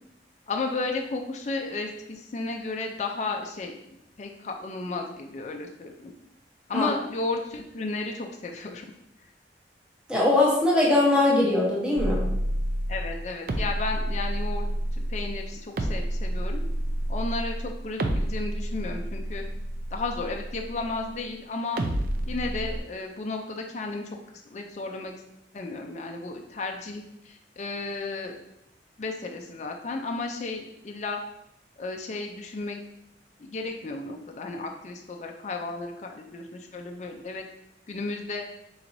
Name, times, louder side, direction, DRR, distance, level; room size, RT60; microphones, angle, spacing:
voice 1, 0.5-3.7 4.2-6.1 6.7-8.9 12.9-14.7 14.9-16.6 17.1-19.4 19.9-21.8 22.3-24.2 24.5-25.1 25.5-28.4 29.0-31.2 31.8-32.8 33.4-37.4 37.9-38.5, left 3 dB, 40° left, 3 dB, 0.4 m, -33 dB
voice 2, 10.1-12.2, left 2 dB, 5° right, -5 dB, 0.9 m, -21 dB
sound 1, 12.0-21.2 21.8-22.8, right 1 dB, 50° right, 0.4 m, -29 dB
4.5 x 3.9 x 2.6 m, 0.81 s
head